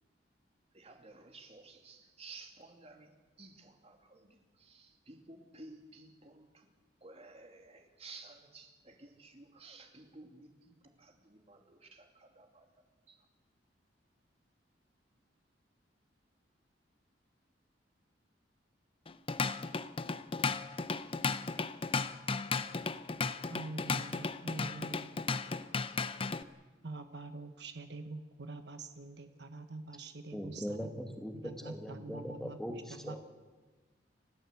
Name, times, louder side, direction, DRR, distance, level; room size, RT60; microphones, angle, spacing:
voice 1, 0.7-6.7 7.0-12.7 13.1-13.2, right 3 dB, 35° right, 4 dB, 2.8 m, -54 dB
Drum kit / Drum, 19.1-26.4, left 4 dB, 30° left, 0.7 m, -35 dB
voice 2, 23.5-25.1 26.8-30.9 31.4-33.2, right 3 dB, 65° right, 8 dB, 1.1 m, -45 dB
voice 3, 30.3-33.2, equal, ahead, 4 dB, 2.2 m, -41 dB
29.5 x 14.0 x 8.3 m, 1.3 s
head